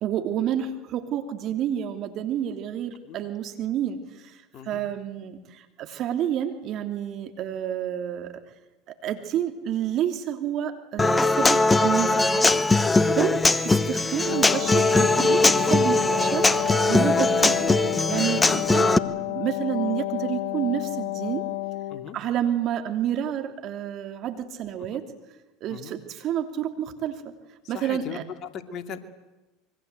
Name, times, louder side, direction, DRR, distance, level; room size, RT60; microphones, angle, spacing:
voice 1, 0.0-8.4 9.0-12.5 13.1-17.7 18.1-21.4 22.1-25.1 25.6-27.3 27.7-28.2, right 10 dB, 50° right, 7 dB, 2.9 m, -29 dB
Human voice / Acoustic guitar, 11.0-19.0, left 3 dB, 15° left, 1.2 m, -20 dB
Wind instrument woodwind instrument, 14.1-22.1, left 17 dB, 70° left, 0.8 m, -31 dB
voice 2, 27.6-29.0, left 7 dB, 45° left, 8 dB, 2.6 m, -39 dB
25.5 x 24.0 x 8.2 m, 1.1 s
hypercardioid pair, 80°, 0 cm